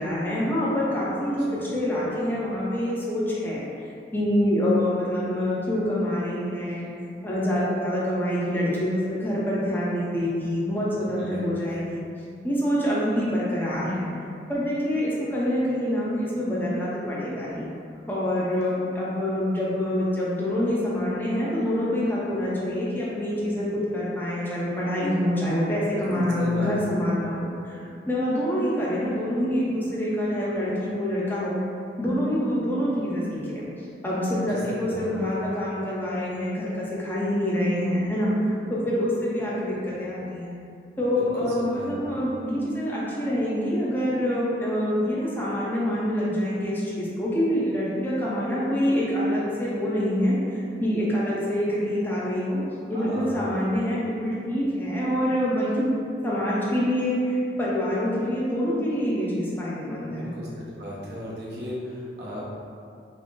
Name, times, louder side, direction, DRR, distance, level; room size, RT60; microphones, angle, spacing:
voice 1, 0.0-3.6 4.1-6.9 7.2-12.1 12.4-14.1 14.5-17.7 18.0-31.6 32.0-33.7 34.0-40.6 41.0-52.6 52.9-55.9 56.2-60.3, equal, 10° left, -7 dB, 0.7 m, -26 dB
voice 2, 10.7-11.4 26.1-26.7 27.2-27.3 34.4-35.1 41.0-42.2 52.9-53.4 60.0-60.5 60.8-62.5, equal, 75° right, -6 dB, 0.9 m, -37 dB
3.7 x 2.1 x 3.7 m, 2.4 s
head